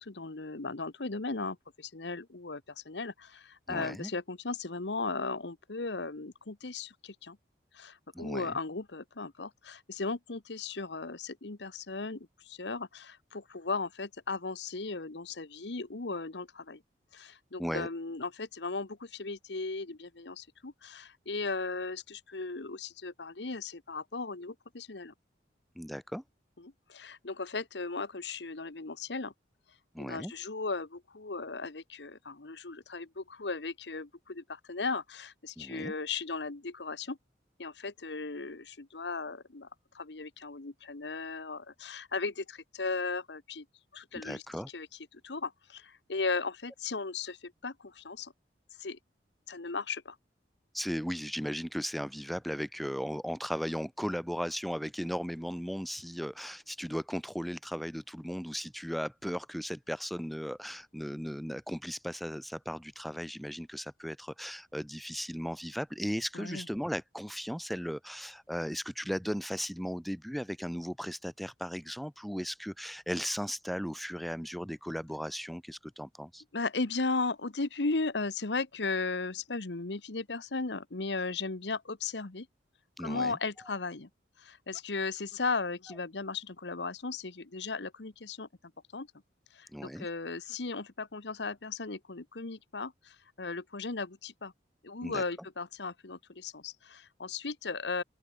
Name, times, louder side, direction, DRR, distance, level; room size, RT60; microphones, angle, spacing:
voice 1, 0.0-7.4 7.7-16.8 17.1-25.1 26.6-29.3 30.0-37.2 37.6-39.7 39.9-43.6 43.9-44.4 44.7-44.9 45.1-48.3 48.8-49.0 49.5-50.2 66.3-66.7 76.5-82.5 83.0-84.1 84.4-88.5 88.9-89.1 89.5-94.5 94.8-98.0, left 3 dB, 75° left, 1.2 m, -36 dB
voice 2, 3.7-4.1 8.1-8.6 17.6-17.9 25.8-26.2 29.9-30.3 35.6-35.9 44.2-44.7 50.7-76.4 83.0-83.4 89.7-90.1 95.0-95.2, equal, ahead, 1.0 m, -36 dB
open air
head